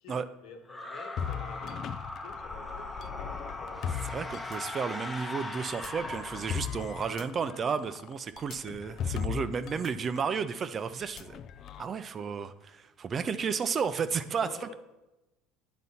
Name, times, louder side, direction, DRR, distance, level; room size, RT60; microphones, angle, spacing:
voice 1, 0.0-1.8 2.2-4.3 9.4-9.5 14.4-14.7, left 5 dB, 70° left, 4 dB, 1.2 m, -50 dB
sound 1, 0.7-7.1, left 2 dB, 10° left, 0.9 m, -40 dB
sound 2, 1.2-5.0 5.7-9.9 10.2-10.3 11.0-11.8, left 8 dB, 45° left, 0.3 m, -38 dB
voice 2, 4.1-11.4 11.8-14.7, right 6 dB, 35° right, 12 dB, 0.4 m, -33 dB
9.4 x 4.0 x 5.6 m, 0.99 s
supercardioid pair, 115°, 0 cm